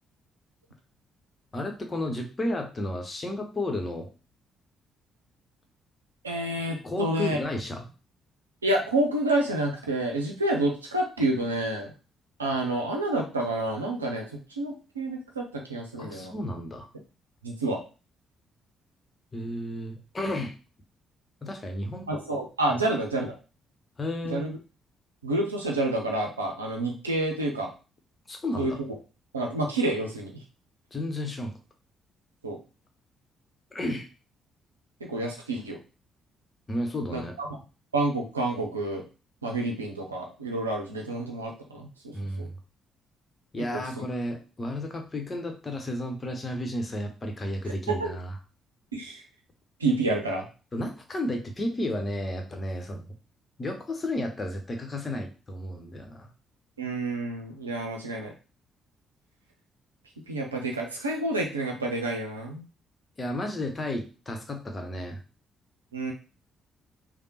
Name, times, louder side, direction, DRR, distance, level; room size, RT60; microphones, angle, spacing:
voice 1, 1.5-4.1 6.8-7.8 16.0-16.9 19.3-20.5 21.4-22.1 22.7-22.8 24.0-24.4 28.3-28.8 30.9-31.5 33.7-34.1 36.7-37.3 42.1-42.5 43.5-48.3 50.7-53.0 53.6-56.3 63.2-65.2, left 1 dB, 30° left, 4 dB, 1.0 m, -32 dB
voice 2, 6.2-7.4 8.6-11.9 12.4-16.3 17.4-17.8 22.1-23.3 24.2-24.6 25.2-27.7 28.6-28.7 29.3-30.4 32.4-32.6 35.1-35.8 37.1-37.5 37.9-39.0 39.4-42.5 43.7-44.0 47.9-48.1 48.9-49.2 49.8-50.5 56.8-58.3 60.3-62.7 65.9-66.1, right 2 dB, 90° right, 1 dB, 0.6 m, -29 dB
3.5 x 2.3 x 4.3 m, 0.33 s
figure-of-eight pair, 45°, 0 cm